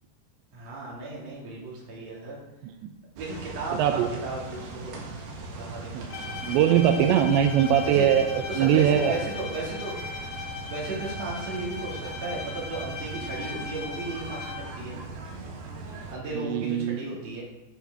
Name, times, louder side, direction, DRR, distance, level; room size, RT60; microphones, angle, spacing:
voice 1, 0.5-2.4 3.1-5.0 5.5-6.7 7.1-7.2 7.8-8.1 8.5-10.0 10.7-15.0 16.1-17.4, right 3 dB, 40° right, -4 dB, 3.3 m, -35 dB
sound 1, 3.2-16.1, right 3 dB, 65° right, 3.1 m, -40 dB
voice 2, 3.7-4.1 5.9-6.1 6.4-9.1 16.3-17.0, right 9 dB, 85° right, 7 dB, 2.9 m, -22 dB
Bowed string instrument, 6.1-14.9, left 5 dB, 65° left, 2.0 m, -38 dB
11.0 x 7.3 x 4.9 m, 0.99 s
omnidirectional pair, 5.1 m